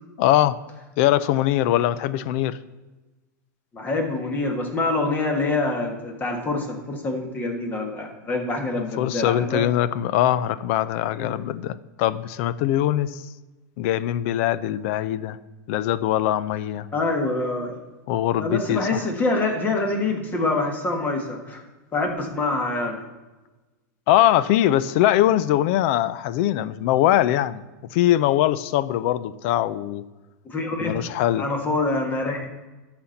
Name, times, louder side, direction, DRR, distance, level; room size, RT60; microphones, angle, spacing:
voice 1, 0.2-0.6 1.0-2.6 8.7-13.2 13.8-15.4 15.7-16.9 18.1-19.0 24.1-27.6 27.9-30.0 30.8-31.5, left 12 dB, 45° left, 17 dB, 0.5 m, -22 dB
voice 2, 3.7-9.7 11.2-11.3 16.9-17.7 18.4-21.6 21.9-23.0 30.4-31.0 31.4-32.5, left 2 dB, 15° left, 3 dB, 1.5 m, -25 dB
11.5 x 4.3 x 7.8 m, 1.2 s
supercardioid pair, 155°, 10 cm